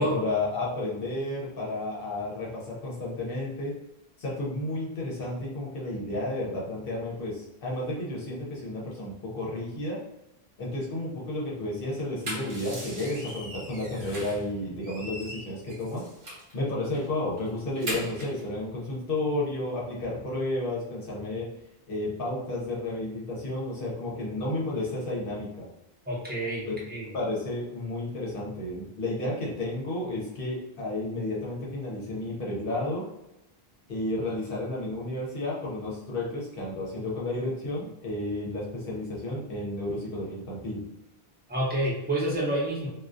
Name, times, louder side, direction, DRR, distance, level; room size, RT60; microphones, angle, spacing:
voice 1, 0.0-3.7 4.2-10.0 10.6-16.0 16.5-21.5 21.9-25.7 26.6-26.8 27.1-33.0 33.9-40.8, left 2 dB, 65° left, -4 dB, 0.8 m, -32 dB
sound 1, 12.0-14.5 14.8-16.5 16.9-17.1 17.4-18.4, equal, 55° right, 1.0 m, -39 dB
voice 2, 26.0-27.1 41.5-42.9, right 1 dB, 10° right, -6 dB, 0.7 m, -28 dB
2.3 x 2.2 x 2.4 m, 0.91 s
omnidirectional pair, 1.0 m